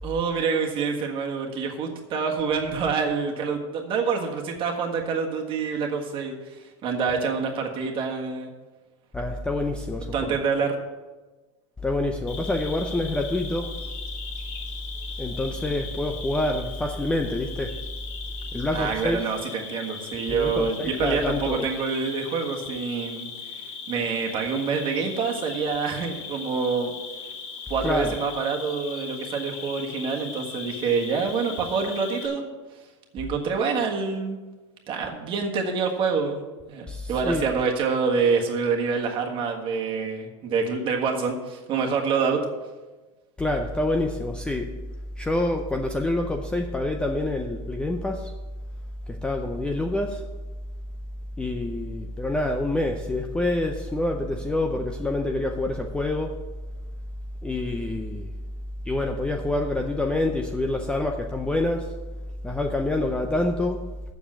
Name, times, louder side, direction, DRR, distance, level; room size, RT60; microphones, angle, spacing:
voice 1, 0.0-8.5 10.1-10.8 18.7-26.9 27.7-32.5 33.1-34.4 34.9-42.4, right 5 dB, 35° right, 2 dB, 1.6 m, -26 dB
voice 2, 9.1-10.4 11.8-13.8 15.2-17.8 18.5-19.2 20.3-21.7 27.8-28.2 36.9-37.5 43.4-44.7 45.2-48.3 49.1-50.2 51.4-56.4 57.4-58.3 58.9-61.9 62.4-63.8, left 2 dB, 5° left, 3 dB, 0.5 m, -27 dB
Cricket, 12.3-32.3, left 5 dB, 65° left, 2.8 m, -38 dB
7.2 x 7.0 x 7.4 m, 1.2 s
supercardioid pair, 145°, 16 cm